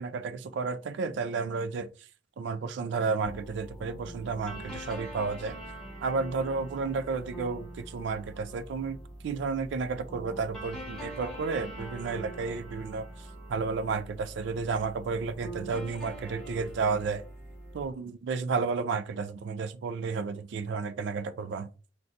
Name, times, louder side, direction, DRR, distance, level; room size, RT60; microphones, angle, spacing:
voice 1, 0.0-1.9 2.4-5.6 6.0-17.2 17.7-21.7, right 4 dB, 65° right, 0.3 m, -32 dB
sound 1, 3.2-17.9, right 1 dB, 5° left, 1.0 m, -43 dB
3.8 x 2.3 x 2.4 m
head